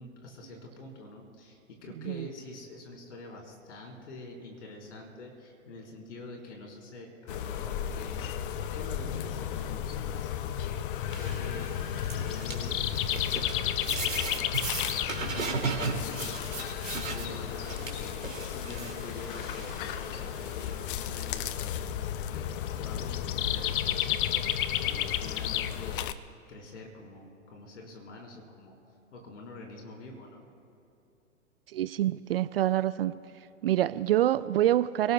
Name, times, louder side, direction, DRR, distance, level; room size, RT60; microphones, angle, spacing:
voice 1, 0.0-8.2 8.6-16.6 17.1-26.1 26.5-28.7 29.1-30.5, left 2 dB, 60° left, -1 dB, 4.4 m, -46 dB
sound 1, 7.3-26.1, left 10 dB, 40° left, 0.7 m, -33 dB
sound 2, 11.1-20.9, right 4 dB, 80° right, 2.6 m, -38 dB
voice 2, 31.7-33.1 33.6-35.1, right 13 dB, 50° right, 15 dB, 0.4 m, -26 dB
29.5 x 18.5 x 2.3 m, 3.0 s
figure-of-eight pair, 110°, 40 cm